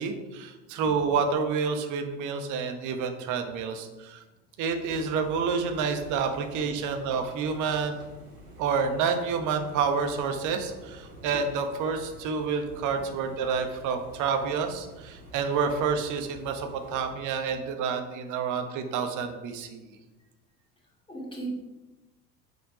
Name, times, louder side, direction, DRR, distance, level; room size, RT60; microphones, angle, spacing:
voice 1, 0.0-4.2 4.6-8.0 8.6-19.9, right 5 dB, 40° right, 6 dB, 1.1 m, -29 dB
sound 1, 4.8-17.1, equal, 80° right, 1.9 m, -49 dB
voice 2, 21.1-21.5, right 3 dB, 10° left, -3 dB, 2.4 m, -37 dB
6.3 x 4.9 x 4.9 m, 1.1 s
figure-of-eight pair, 70°, 45 cm